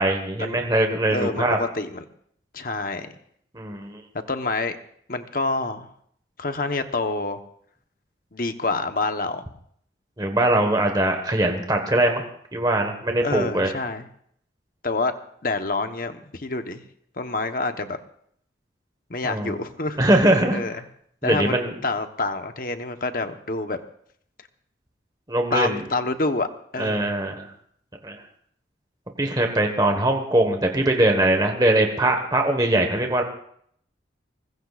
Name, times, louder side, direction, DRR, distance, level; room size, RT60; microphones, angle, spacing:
voice 1, 0.0-1.6 3.5-4.0 10.2-12.2 12.5-13.7 19.2-19.6 20.0-20.6 21.2-21.7 25.3-25.8 26.8-27.5 28.0-28.2 29.2-33.2, right 1 dB, 20° right, 4 dB, 1.5 m, -21 dB
voice 2, 1.1-2.0 2.5-3.1 4.3-4.8 5.1-5.9 6.4-7.4 8.3-9.5 13.2-14.1 14.8-15.1 15.4-16.8 17.2-18.0 19.1-20.0 20.5-20.9 21.2-21.5 21.8-23.8 25.5-26.5 26.7-27.1, left 3 dB, 50° left, 7 dB, 1.1 m, -27 dB
24.0 x 20.0 x 2.5 m, 0.66 s
head